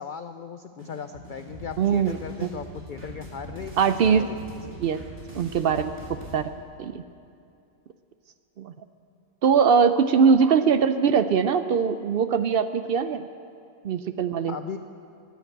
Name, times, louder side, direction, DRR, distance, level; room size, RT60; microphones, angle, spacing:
voice 1, 0.0-4.8 14.5-14.8, left 7 dB, 80° left, 9 dB, 0.4 m, -38 dB
sound 1, 0.8-6.3, right 1 dB, 40° right, 2.6 m, -42 dB
voice 2, 1.8-2.5 3.8-4.2 4.8-5.0 5.3-6.0 6.3-6.5 6.8-7.0 8.6-8.7 9.4-13.2 13.8-14.5, right 6 dB, 65° right, 11 dB, 0.5 m, -21 dB
14.5 x 10.5 x 8.0 m, 2.5 s
omnidirectional pair, 1.5 m